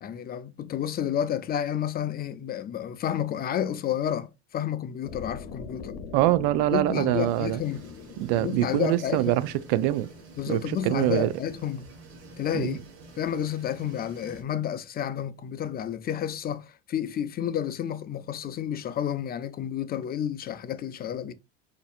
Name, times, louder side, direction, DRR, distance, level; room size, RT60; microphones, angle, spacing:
voice 1, 0.0-6.0 6.7-7.8 8.4-9.3 10.4-11.9 12.4-12.8 13.2-21.3, left 9 dB, 30° left, 0.4 m, -30 dB
sound 1, 5.0-11.2, left 6 dB, 85° left, 0.7 m, -43 dB
voice 2, 6.1-7.6 8.2-10.1 10.5-11.3 12.5-12.8, right 15 dB, 70° right, 0.5 m, -24 dB
sound 2, 7.2-14.4, right 2 dB, 90° right, 1.3 m, -49 dB
4.4 x 2.6 x 2.3 m
supercardioid pair, 95°, 32 cm